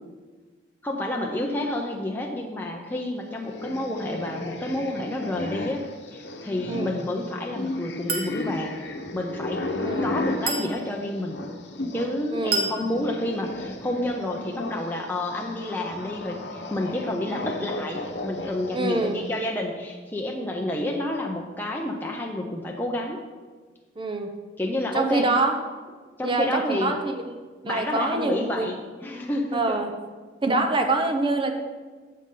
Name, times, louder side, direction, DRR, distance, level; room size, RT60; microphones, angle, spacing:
voice 1, 0.8-8.8 9.1-9.7 10.0-11.4 11.9-23.2 24.6-25.3 26.2-27.0 27.6-29.8, left 1 dB, 10° left, 0 dB, 0.6 m, -29 dB
sound 1, 3.4-12.2 12.5-19.3, left 2 dB, 65° left, 1.0 m, -34 dB
voice 2, 6.7-7.0 9.8-10.1 12.3-12.7 18.7-19.2 24.0-24.3 24.9-25.5 26.2-28.7 29.5-29.9 30.4-31.5, right 2 dB, 25° right, 5 dB, 0.7 m, -25 dB
Chink clink, 8.1-8.4 10.5-10.8 12.5-12.8, right 3 dB, 55° right, 1.3 m, -27 dB
9.7 x 7.5 x 3.8 m, 1.4 s
head